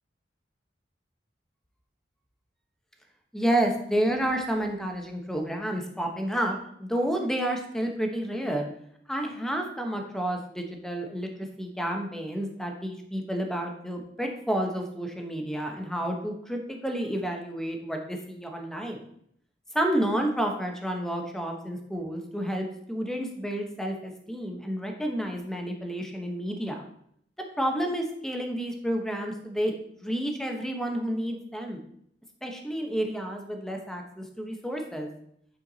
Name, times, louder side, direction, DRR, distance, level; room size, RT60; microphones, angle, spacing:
voice 1, 3.3-8.7 9.1-19.0 19.7-26.8 27.6-29.7 30.0-31.8 32.4-35.1, right 1 dB, 5° left, 3 dB, 0.9 m, -30 dB
9.0 x 4.5 x 4.0 m, 0.70 s
head